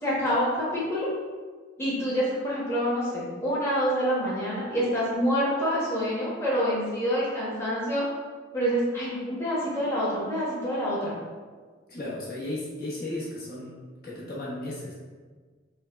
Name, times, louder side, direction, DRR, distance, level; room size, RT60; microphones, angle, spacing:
voice 1, 0.0-1.1 1.8-8.0 8.5-11.1, equal, 15° left, -8 dB, 1.1 m, -27 dB
voice 2, 11.9-13.7 14.0-14.9, left 1 dB, 50° left, -7 dB, 1.0 m, -35 dB
6.2 x 2.2 x 3.5 m, 1.5 s
head